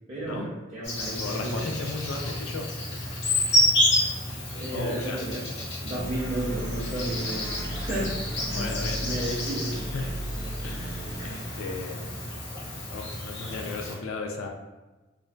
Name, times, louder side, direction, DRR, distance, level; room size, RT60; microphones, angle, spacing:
voice 1, 0.1-1.7 4.5-5.4 5.8-8.1 8.5-8.7 9.0-9.8, right 1 dB, 30° right, -9 dB, 0.5 m, -32 dB
Insect, 0.8-13.9, left 1 dB, 55° left, 0.7 m, -30 dB
voice 2, 1.2-2.7 4.7-5.2 8.5-9.4 9.9-10.1 10.6-12.0 12.9-14.5, left 3 dB, 80° left, 3 dB, 0.4 m, -35 dB
sound 1, 6.0-12.4, right 1 dB, 85° right, 0.6 m, -37 dB
2.5 x 2.2 x 2.2 m, 1.1 s
head